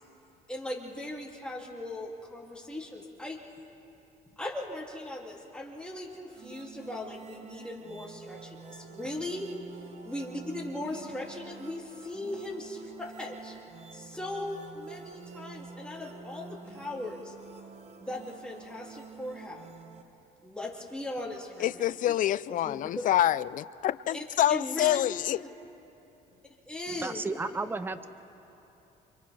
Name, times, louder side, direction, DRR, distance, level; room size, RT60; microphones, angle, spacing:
voice 1, 0.5-3.4 4.4-9.5 10.0-13.6 13.9-17.3 18.0-19.7 20.4-23.0 24.1-25.0 26.7-27.2, left 1 dB, 5° left, -3 dB, 2.7 m, -38 dB
sound 1, 6.3-20.0, right 5 dB, 40° right, 1.1 m, -48 dB
voice 2, 21.6-25.4, left 12 dB, 50° left, 18 dB, 0.4 m, -27 dB
voice 3, 27.0-28.1, right 3 dB, 10° right, 12 dB, 0.7 m, -33 dB
29.5 x 26.0 x 3.4 m, 2.9 s
cardioid pair, 110°, 17 cm